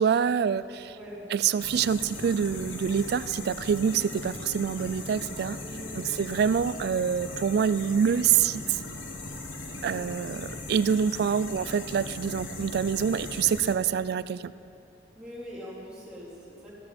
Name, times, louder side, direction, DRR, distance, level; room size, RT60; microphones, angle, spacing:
voice 1, 0.0-0.9 1.3-5.6 5.9-8.8 9.8-14.5, right 7 dB, 55° right, 16 dB, 0.3 m, -26 dB
voice 2, 0.9-1.2 5.6-6.1 9.9-10.3 15.1-16.7, equal, 5° right, -10 dB, 3.6 m, -43 dB
sound 1, 1.6-13.7, left 2 dB, 90° left, 1.5 m, -39 dB
14.5 x 13.0 x 4.3 m, 2.8 s
head